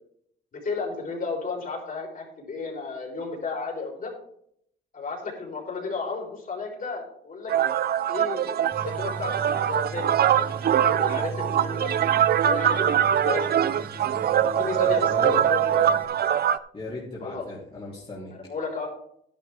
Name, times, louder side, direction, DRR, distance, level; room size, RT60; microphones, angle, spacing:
voice 1, 0.5-4.1 4.9-7.5 8.1-11.9 12.4-13.7 14.1-14.2 14.5-16.0 17.2-17.4 18.3-18.9, left 4 dB, 45° left, -1 dB, 4.1 m, -33 dB
sound 1, 7.5-16.6, right 10 dB, 50° right, 0.5 m, -23 dB
Tools, 8.7-16.0, right 3 dB, 10° right, 1.8 m, -38 dB
voice 2, 14.8-15.4 16.7-18.3, left 2 dB, 25° left, -6 dB, 2.9 m, -37 dB
11.0 x 10.5 x 3.5 m, 0.70 s
cardioid pair, 90°, 20 cm